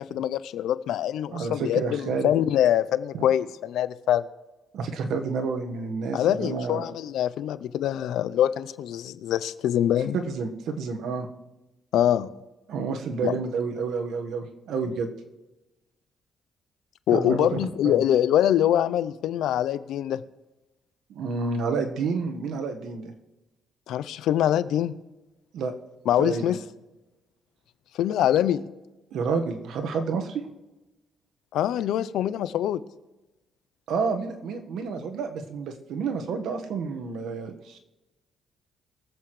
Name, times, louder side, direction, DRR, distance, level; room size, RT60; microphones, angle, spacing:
voice 1, 0.0-4.3 6.1-10.2 11.9-12.3 13.2-13.4 17.1-20.2 23.9-24.9 26.1-26.6 27.9-28.6 31.5-32.8, left 11 dB, 80° left, 15 dB, 0.5 m, -24 dB
voice 2, 1.3-2.3 3.1-3.2 4.7-6.9 10.1-11.3 12.7-15.1 17.1-17.5 17.8-18.0 21.1-23.1 25.5-25.7 26.2-26.4 29.1-30.4 33.9-37.8, right 5 dB, 75° right, 5 dB, 1.4 m, -29 dB
23.0 x 7.8 x 3.2 m, 1.1 s
cardioid pair, 90°, 0 cm